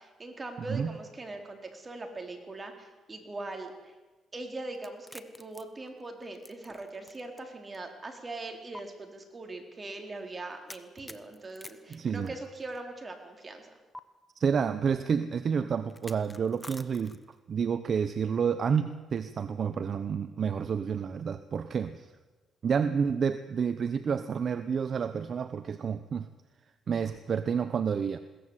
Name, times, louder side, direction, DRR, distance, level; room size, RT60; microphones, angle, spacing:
voice 1, 0.0-3.9 4.3-13.8, right 2 dB, 25° right, 4 dB, 4.2 m, -41 dB
sound 1, 4.7-7.4 7.7-7.8 8.7-8.8 10.7-12.8 13.9-14.0 15.9-17.4, left 1 dB, 10° left, 1.2 m, -48 dB
voice 2, 11.9-12.3 14.3-17.2 17.5-22.1 22.6-26.3 26.9-28.2, right 6 dB, 50° right, 12 dB, 0.9 m, -29 dB
21.5 x 17.5 x 8.2 m, 1.2 s
cardioid pair, 90°, 0 cm